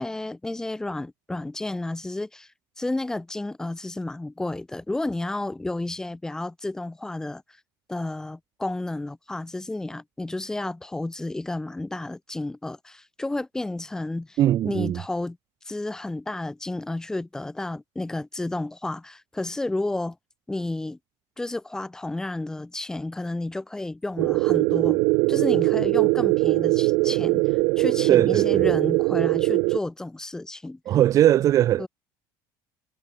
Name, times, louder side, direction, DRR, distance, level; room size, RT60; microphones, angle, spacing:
voice 1, 0.0-2.5 2.8-7.4 7.9-14.4 14.6-15.4 15.7-20.2 20.5-21.0 21.4-25.0 25.3-30.8 31.8-31.9, left 2 dB, 5° left, 2.0 m, -31 dB
voice 2, 14.4-15.0 28.1-28.7 30.9-31.9, right 12 dB, 35° right, 0.8 m, -20 dB
sound 1, 24.2-29.8, right 28 dB, 65° right, 0.7 m, -21 dB
cardioid pair, 165°, 9 cm